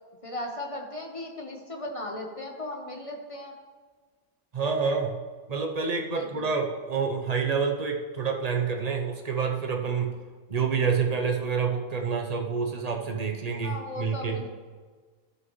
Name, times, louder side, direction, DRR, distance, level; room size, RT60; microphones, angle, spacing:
voice 1, 0.2-3.5 6.1-6.5 13.6-14.5, left 1 dB, 25° left, 2 dB, 0.8 m, -37 dB
voice 2, 4.5-5.2 5.5-10.1 10.5-14.4, right 5 dB, 40° right, 2 dB, 0.5 m, -28 dB
14.0 x 5.6 x 3.1 m, 1.5 s
omnidirectional pair, 1.6 m